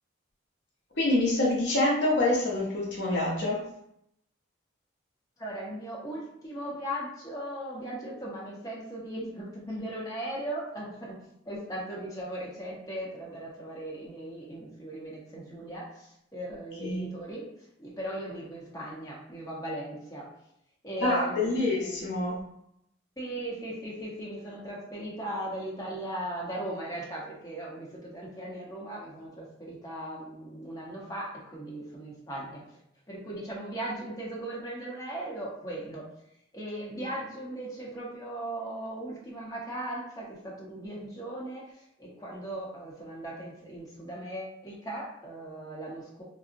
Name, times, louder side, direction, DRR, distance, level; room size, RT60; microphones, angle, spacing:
voice 1, 1.0-3.6 9.7-9.8 16.8-17.1 21.0-22.4, left 2 dB, 55° left, -3 dB, 0.6 m, -26 dB
voice 2, 5.4-11.2 11.4-17.5 17.8-20.3 20.8-22.1 23.2-32.6 33.1-36.1 36.5-46.2, right 1 dB, 15° left, -5 dB, 0.8 m, -38 dB
3.6 x 2.0 x 2.5 m, 0.77 s
head